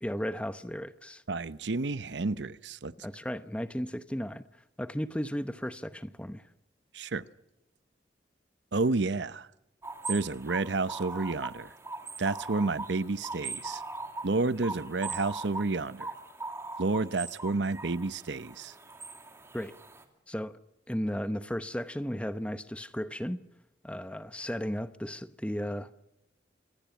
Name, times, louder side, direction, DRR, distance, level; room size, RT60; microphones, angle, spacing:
voice 1, 0.0-1.2 3.0-4.4 4.8-6.4 19.5-19.7 20.3-20.6 20.9-23.4 23.8-26.0, equal, 5° left, 0.8 m, -35 dB
voice 2, 1.3-2.9 6.9-7.2 8.7-9.5 10.1-11.7 12.2-13.8 14.2-16.1 16.8-18.7, right 3 dB, 75° right, 0.8 m, -30 dB
sound 1, 9.8-20.0, right 3 dB, 15° right, 2.3 m, -40 dB
26.5 x 19.5 x 7.1 m
head